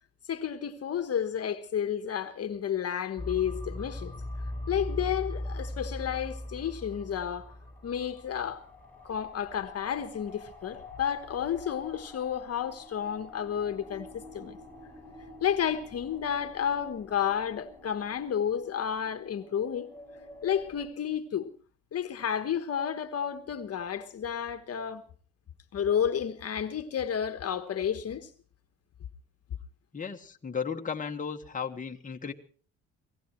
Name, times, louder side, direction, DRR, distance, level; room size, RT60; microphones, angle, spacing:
voice 1, 0.3-4.1 4.7-7.5 7.8-8.6 9.0-14.6 15.4-19.9 20.4-21.5 21.9-25.0 25.7-28.3, left 8 dB, 55° left, 1.3 m, -31 dB
sound 1, 3.2-20.9, left 1 dB, 5° left, 6.7 m, -42 dB
voice 2, 29.9-32.3, left 6 dB, 25° left, 1.4 m, -35 dB
25.5 x 18.0 x 3.1 m
cardioid pair, 90°, 30 cm